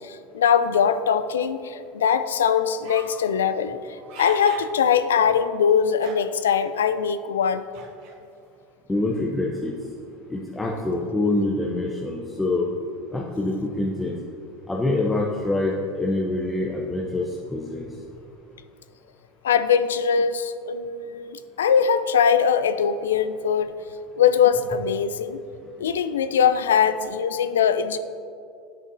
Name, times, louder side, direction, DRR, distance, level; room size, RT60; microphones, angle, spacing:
voice 1, 0.0-3.8 4.2-7.6 19.4-23.7 24.2-25.4 25.8-28.0, left 7 dB, 85° left, 12 dB, 0.3 m, -21 dB
sound 1, 2.8-3.2 3.8-4.7 5.2-5.3 5.9-6.5 7.7-8.2, right 5 dB, 60° right, 0.8 m, -40 dB
voice 2, 8.9-9.7 10.3-12.7 13.1-14.2 14.7-17.2 17.5-17.9, left 2 dB, 10° left, -3 dB, 0.7 m, -25 dB
9.8 x 5.2 x 2.6 m, 2.4 s
hypercardioid pair, 90°, 0 cm